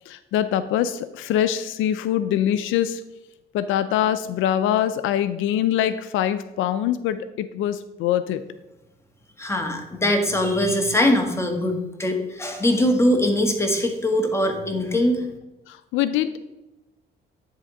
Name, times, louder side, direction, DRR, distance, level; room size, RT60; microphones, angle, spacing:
voice 1, 0.1-3.0 3.5-8.4 15.7-16.4, left 11 dB, 90° left, 12 dB, 0.4 m, -23 dB
voice 2, 9.4-15.2, left 1 dB, 15° left, 3 dB, 1.6 m, -22 dB
10.0 x 3.6 x 5.0 m, 1.0 s
cardioid pair, 90°, 20 cm